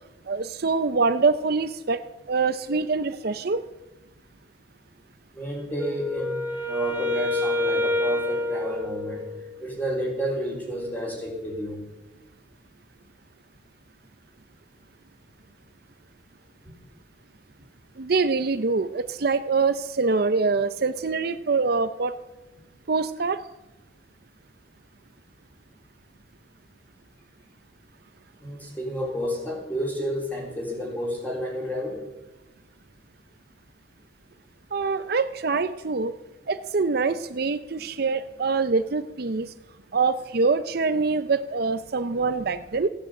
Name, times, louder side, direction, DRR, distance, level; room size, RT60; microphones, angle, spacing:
voice 1, 0.3-2.0 2.3-3.6 18.0-22.1 22.9-23.4 34.7-36.1 36.5-39.5 39.9-42.9, right 4 dB, 55° right, 11 dB, 0.6 m, -24 dB
voice 2, 5.3-9.3 9.6-11.8 28.4-32.1, equal, 10° left, 0 dB, 3.6 m, -31 dB
Wind instrument woodwind instrument, 5.8-9.7, left 2 dB, 10° right, 1.6 m, -27 dB
16.0 x 10.0 x 7.8 m, 1.1 s
head